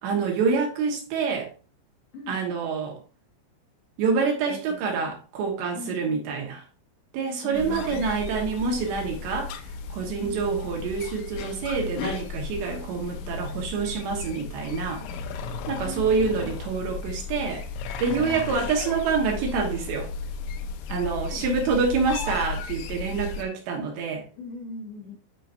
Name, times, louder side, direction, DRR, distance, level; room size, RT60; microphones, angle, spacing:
voice 1, 0.0-1.5 2.3-3.0 4.0-6.6 7.1-9.5 9.9-15.0 15.7-17.6 18.0-20.1 20.9-24.2, right 5 dB, 70° right, 3.4 m, -27 dB
voice 2, 2.1-2.4 4.5-5.1 5.7-6.1 7.4-8.1 10.2-10.4 15.7-16.5 18.0-18.7 20.9-21.5 24.4-25.3, left 2 dB, 65° left, 3.4 m, -40 dB
sound 1, 7.5-23.4, left 5 dB, 85° left, 3.1 m, -35 dB
11.5 x 5.0 x 2.6 m
omnidirectional pair, 5.4 m